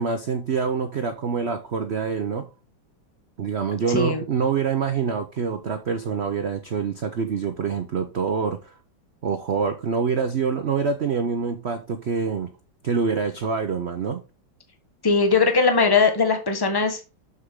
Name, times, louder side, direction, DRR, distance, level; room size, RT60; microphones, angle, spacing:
voice 1, 0.0-2.5 3.4-8.7 9.2-12.5 12.8-14.2, right 5 dB, 60° right, 0.7 m, -26 dB
voice 2, 3.9-4.2 15.0-17.0, left 4 dB, 15° left, 1.1 m, -20 dB
7.3 x 6.4 x 3.7 m
omnidirectional pair, 2.1 m